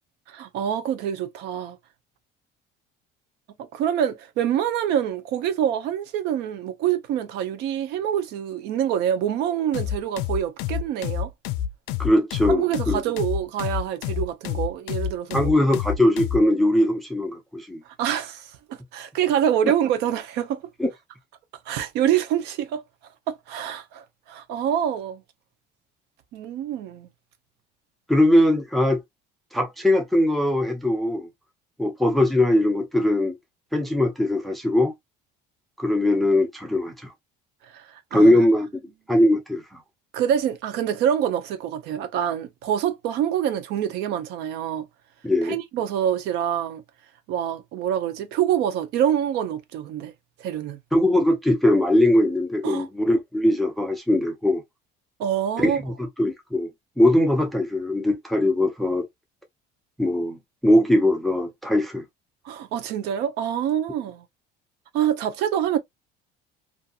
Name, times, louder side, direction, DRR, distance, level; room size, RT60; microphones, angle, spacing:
voice 1, 0.3-1.8 3.7-11.3 12.5-15.5 18.0-20.6 21.7-22.8 23.3-25.2 26.3-27.1 37.7-38.3 40.1-44.9 45.4-46.8 47.3-50.1 50.4-50.8 52.6-52.9 55.2-55.8 62.4-64.2 64.9-65.8, right 10 dB, 60° right, 0.6 m, -26 dB
sound 1, 9.7-16.4, left 10 dB, 80° left, 0.4 m, -28 dB
voice 2, 12.0-13.0 15.3-17.8 20.8-20.9 28.1-29.0 29.5-31.3 31.8-33.4 33.7-34.9 35.8-36.9 38.1-38.7 39.1-39.8 45.2-45.6 50.9-54.6 55.6-56.7 57.0-59.1 60.0-62.0, left 1 dB, ahead, 0.4 m, -20 dB
2.7 x 2.5 x 2.3 m
cardioid pair, 180°, 19 cm